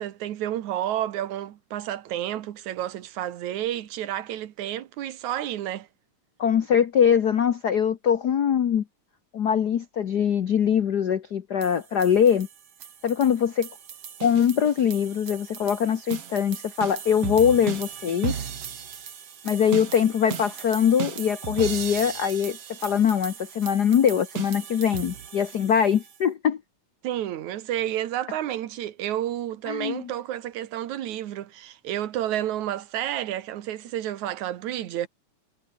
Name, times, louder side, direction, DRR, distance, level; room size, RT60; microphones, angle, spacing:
voice 1, 0.0-5.9 27.0-35.1, right 12 dB, 80° right, 2.6 m, -30 dB
voice 2, 6.4-8.8 9.3-12.5 13.0-13.7 14.2-18.5 19.4-26.6 29.7-30.1, left 8 dB, 80° left, 0.9 m, -22 dB
sound 1, 11.6-26.2, right 8 dB, 55° right, 2.9 m, -36 dB
omnidirectional pair, 3.3 m